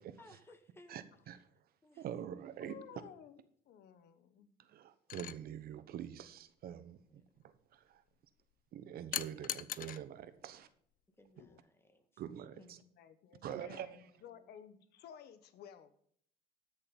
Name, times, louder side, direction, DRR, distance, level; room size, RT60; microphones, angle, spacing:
voice 1, 0.2-1.0 1.8-2.3 2.9-3.1 7.1-7.3 9.4-9.5 10.4-10.5 11.1-12.2 12.5-12.8 13.7-14.5, left 1 dB, 15° left, 1.8 m, -62 dB
voice 2, 0.9-1.4 2.0-2.8 4.6-8.0 8.7-10.7 12.2-12.8 13.4-13.9, right 10 dB, 65° right, 1.1 m, -45 dB
voice 3, 2.6-4.5 12.7-15.9, left 8 dB, 75° left, 1.2 m, -55 dB
sound 1, 5.1-5.4 9.1-10.0 11.4-11.6, left 12 dB, 55° left, 0.6 m, -40 dB
13.0 x 6.8 x 5.3 m
cardioid pair, 110°, 17 cm